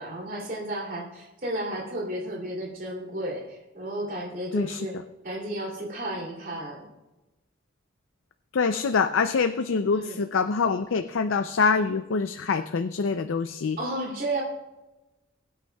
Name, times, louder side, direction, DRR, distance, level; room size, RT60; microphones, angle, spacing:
voice 1, 0.0-5.0 5.2-6.9 9.9-10.2 13.8-14.4, right 1 dB, 45° right, -3 dB, 2.8 m, -33 dB
voice 2, 4.5-4.9 8.5-13.8, left 5 dB, 80° left, 9 dB, 0.5 m, -25 dB
21.5 x 9.0 x 2.3 m, 1.1 s
head